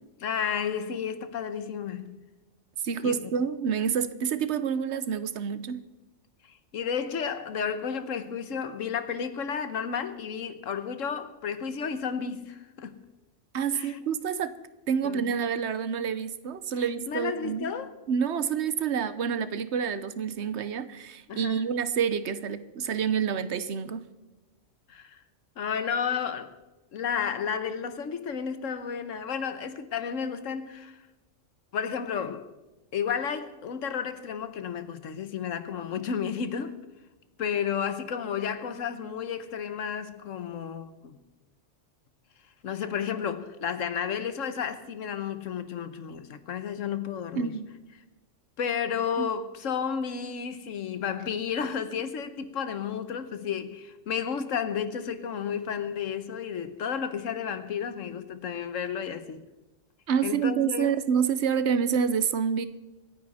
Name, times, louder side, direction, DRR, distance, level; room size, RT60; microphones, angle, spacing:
voice 1, 0.2-2.2 3.0-3.3 6.7-13.0 13.7-14.0 15.0-15.3 17.1-18.0 21.3-21.6 24.9-25.2 25.6-26.5 26.9-31.0 31.7-32.5 32.9-36.8 37.4-41.2 42.6-47.6 48.6-59.4 60.2-60.9, left 7 dB, 85° left, 1.4 m, -32 dB
voice 2, 2.8-5.8 13.5-14.5 14.9-17.7 18.1-24.0 47.3-47.7 60.1-62.7, right 7 dB, 65° right, 1.1 m, -28 dB
25.5 x 9.8 x 4.2 m
omnidirectional pair, 1.3 m